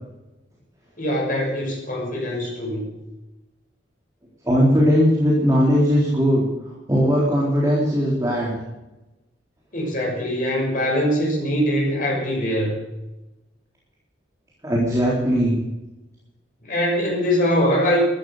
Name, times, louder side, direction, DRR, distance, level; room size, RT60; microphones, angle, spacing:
voice 1, 1.0-2.9 9.7-12.8 16.7-18.0, equal, 45° left, -1 dB, 6.2 m, -22 dB
voice 2, 4.4-6.4 6.9-8.6 14.6-15.6, equal, 15° right, -5 dB, 3.9 m, -18 dB
14.0 x 13.0 x 6.7 m, 1.0 s
head